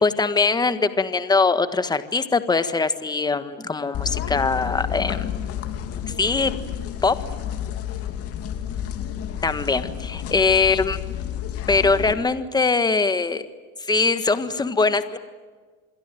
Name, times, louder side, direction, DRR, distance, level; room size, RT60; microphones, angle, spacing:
voice 1, 0.0-5.3 6.1-6.5 7.0-7.2 9.4-11.0 11.7-13.4 13.9-15.2, left 4 dB, 15° left, 11 dB, 1.5 m, -21 dB
sound 1, 3.9-12.1, left 10 dB, 45° left, 2.7 m, -30 dB
27.5 x 22.0 x 9.2 m, 1.4 s
cardioid pair, 135°, 32 cm